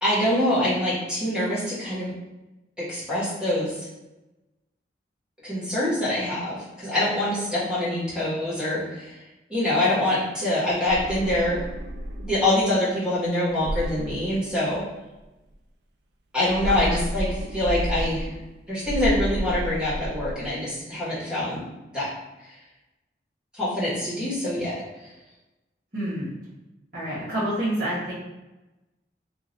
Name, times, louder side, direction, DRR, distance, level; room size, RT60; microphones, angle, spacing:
voice 1, 0.0-2.1 2.8-3.7 5.4-9.1 9.5-11.6 12.3-14.8 16.3-18.3 18.7-21.6 21.9-22.1 23.5-24.8, left 1 dB, 5° right, -10 dB, 1.5 m, -25 dB
sound 1, 10.7-12.6 13.5-15.0 16.4-18.5 18.8-20.5, equal, 75° right, 0.5 m, -31 dB
voice 2, 16.6-17.0 25.9-26.3 26.9-28.1, right 1 dB, 50° right, -13 dB, 1.3 m, -28 dB
2.9 x 2.5 x 4.0 m, 1.0 s
head